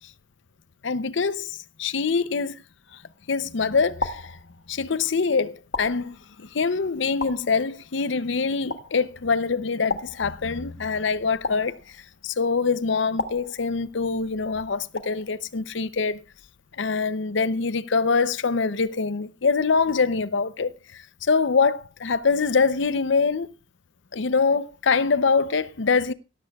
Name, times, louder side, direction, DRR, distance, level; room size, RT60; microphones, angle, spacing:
voice 1, 0.8-2.5 3.3-4.3 4.7-12.0 12.2-16.2 16.8-23.5 24.1-26.1, left 4 dB, 65° left, 0.6 m, -24 dB
sound 1, 2.9-3.4 4.0-5.0 5.7-6.6 7.2-8.0 8.7-9.3 9.9-10.8 11.4-12.3 13.2-14.1 15.0-15.6, left 3 dB, 80° left, 1.5 m, -35 dB
17.5 x 14.0 x 2.3 m
head